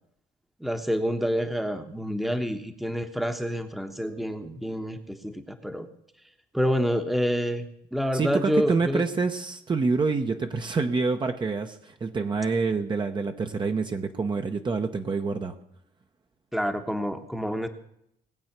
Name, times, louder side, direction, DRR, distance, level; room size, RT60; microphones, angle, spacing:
voice 1, 0.6-5.9 6.5-9.0 16.5-17.7, equal, ahead, 8 dB, 1.2 m, -28 dB
voice 2, 8.1-15.5, right 4 dB, 25° right, 5 dB, 1.0 m, -27 dB
20.0 x 7.8 x 6.0 m, 0.75 s
cardioid pair, 110°, 17 cm